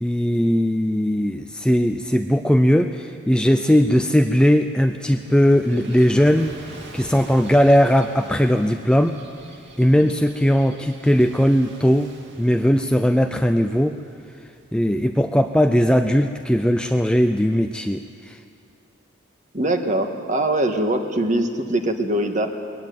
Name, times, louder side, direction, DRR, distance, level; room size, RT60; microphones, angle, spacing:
voice 1, 0.0-6.6 6.9-9.2 9.8-12.1 12.4-14.0 14.7-18.4, equal, 5° left, 6 dB, 0.5 m, -18 dB
Gull seagull / Waves surf, 4.6-15.0, right 2 dB, 55° right, 2.5 m, -45 dB
voice 2, 19.5-22.5, right 1 dB, 35° right, 5 dB, 1.7 m, -22 dB
21.5 x 16.5 x 9.5 m, 2.3 s
head